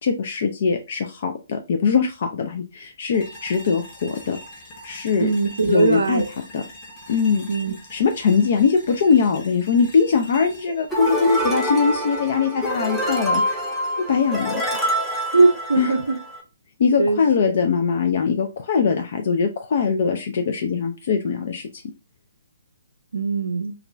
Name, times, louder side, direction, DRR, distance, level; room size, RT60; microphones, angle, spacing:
voice 1, 0.0-4.4 4.8-5.3 5.7-6.2 6.5-6.6 7.1-7.5 7.9-13.6 14.0-14.6 15.7-15.9 16.8-21.8, left 5 dB, 55° left, 0.3 m, -21 dB
sound 1, 3.1-12.2, equal, 30° left, 0.8 m, -43 dB
voice 2, 5.2-6.3 7.5-7.8 15.3-16.2 17.0-17.4 23.1-23.7, right 3 dB, 75° right, 0.4 m, -20 dB
sound 2, 10.9-16.4, equal, ahead, 0.6 m, -25 dB
2.4 x 2.2 x 2.9 m
figure-of-eight pair, 130°, 0 cm